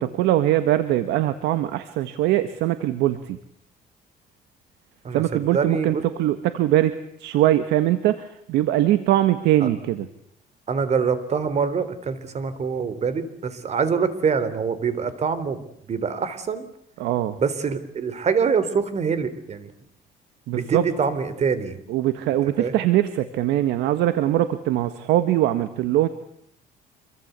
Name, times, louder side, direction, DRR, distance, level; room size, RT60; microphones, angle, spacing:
voice 1, 0.0-3.4 5.1-10.1 17.0-17.4 20.5-20.9 21.9-26.1, right 13 dB, 85° right, 11 dB, 1.7 m, -22 dB
voice 2, 5.0-6.0 9.6-9.7 10.7-16.7 17.4-19.7 20.5-21.8 22.4-22.7, right 6 dB, 40° right, 14 dB, 3.8 m, -25 dB
27.0 x 24.0 x 8.3 m, 0.70 s
cardioid pair, 110°, 17 cm